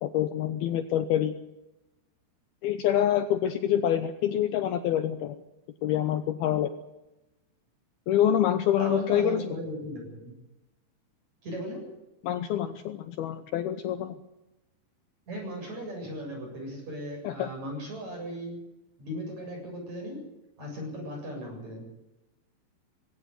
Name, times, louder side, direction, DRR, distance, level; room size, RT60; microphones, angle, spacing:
voice 1, 0.0-1.4 2.6-5.4 5.8-6.7 8.1-9.5 12.2-14.2 17.2-17.5, left 10 dB, 75° left, 9 dB, 2.5 m, -26 dB
voice 2, 8.8-10.3 11.4-11.9 15.3-18.6 19.0-20.3 20.6-21.9, equal, 40° right, 2 dB, 8.7 m, -37 dB
20.5 x 17.0 x 8.3 m, 0.96 s
omnidirectional pair, 5.2 m